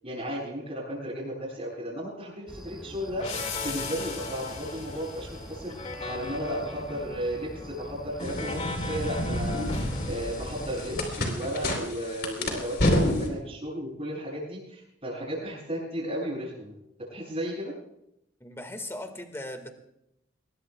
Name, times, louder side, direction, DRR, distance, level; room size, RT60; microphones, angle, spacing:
voice 1, 0.0-3.2 3.6-5.8 6.0-9.7 10.1-16.7 17.1-17.7, equal, 30° right, -9 dB, 7.2 m, -34 dB
sound 1, 2.5-11.2, equal, ahead, 1.4 m, -44 dB
sound 2, 3.2-11.7, left 3 dB, 35° left, 2.2 m, -38 dB
sound 3, 8.2-13.3, left 1 dB, 55° left, 3.8 m, -29 dB
voice 2, 18.4-19.7, left 1 dB, 15° left, 6 dB, 1.9 m, -38 dB
23.0 x 21.5 x 2.4 m, 0.78 s
head